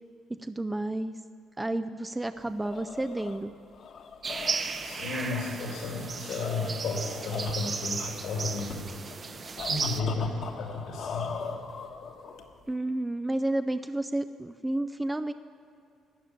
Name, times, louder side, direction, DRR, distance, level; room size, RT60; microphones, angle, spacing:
voice 1, 0.4-1.2 1.6-3.5 12.7-15.3, right 1 dB, 10° right, 9 dB, 0.4 m, -31 dB
sound 1, 2.4-12.7, left 5 dB, 55° left, 1.3 m, -41 dB
sound 2, 4.2-10.0, right 4 dB, 35° right, 0.8 m, -35 dB
voice 2, 4.8-8.9 9.7-11.5, left 3 dB, 80° left, -3 dB, 2.8 m, -33 dB
12.5 x 10.5 x 9.5 m, 2.4 s
cardioid pair, 125°, 0 cm